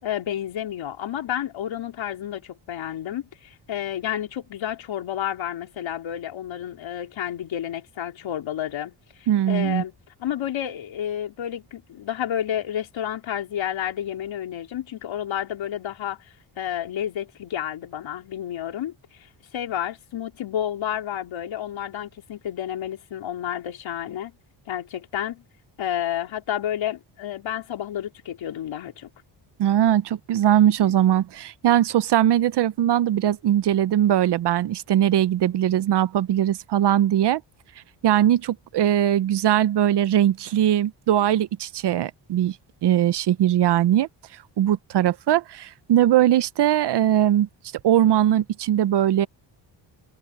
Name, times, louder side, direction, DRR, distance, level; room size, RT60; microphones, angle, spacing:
voice 1, 0.0-9.9 10.2-19.2 19.5-24.3 24.7-25.4 25.8-29.1, left 10 dB, 70° left, 4.1 m, -30 dB
voice 2, 9.3-9.8 29.6-37.4 38.0-42.6 42.8-44.1 44.6-47.5 47.8-49.3, right 11 dB, 60° right, 0.7 m, -20 dB
cardioid pair, 125°, 47 cm